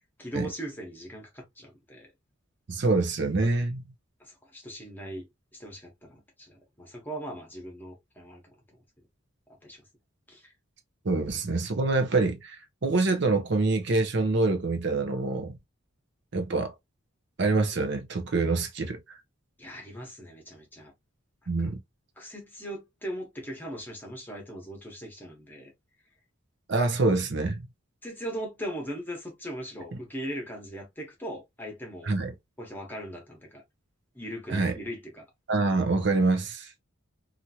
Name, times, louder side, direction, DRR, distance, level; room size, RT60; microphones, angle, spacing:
voice 1, 0.2-2.1 4.2-5.3 5.5-8.5 9.6-9.8 10.3-10.5 19.6-20.9 21.6-21.7 22.2-25.7 28.0-32.1 32.6-33.6 34.1-35.2, right 1 dB, 10° left, 1.0 m, -39 dB
voice 2, 2.7-3.8 11.0-15.5 16.3-16.7 17.4-19.2 21.5-21.8 26.7-27.6 29.9-30.0 32.0-32.3 34.5-34.7 35.5-36.7, right 3 dB, 55° right, 0.6 m, -26 dB
2.9 x 2.5 x 2.7 m
head